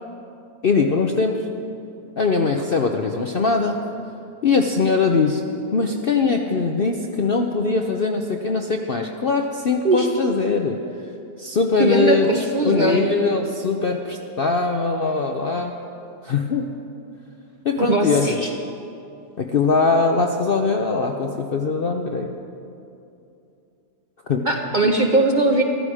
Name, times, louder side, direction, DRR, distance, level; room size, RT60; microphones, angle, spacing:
voice 1, 0.6-1.5 2.2-3.8 4.4-5.4 5.7-10.8 11.4-15.8 16.2-16.7 17.6-18.4 19.4-22.3 24.3-24.5, left 4 dB, 55° left, 3 dB, 0.6 m, -21 dB
voice 2, 11.8-13.1 17.8-18.5 24.4-25.6, right 2 dB, 40° right, 2 dB, 0.7 m, -20 dB
14.5 x 13.0 x 4.9 m, 2.7 s
omnidirectional pair, 1.7 m